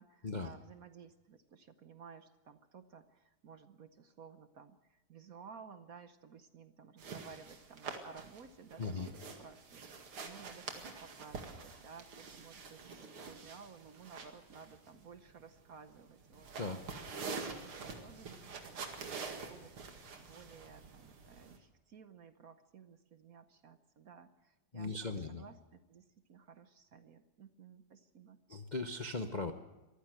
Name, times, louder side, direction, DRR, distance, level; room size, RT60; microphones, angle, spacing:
voice 1, 0.0-9.1 9.4-17.1 17.6-28.4, right 6 dB, 55° right, 10 dB, 1.0 m, -56 dB
sound 1, 7.0-21.6, right 4 dB, 75° right, 2.9 m, -47 dB
voice 2, 8.8-9.1 16.6-16.8 24.7-25.4 28.5-29.5, left 3 dB, 60° left, 6 dB, 0.4 m, -38 dB
23.5 x 15.0 x 7.8 m, 1.1 s
omnidirectional pair, 2.4 m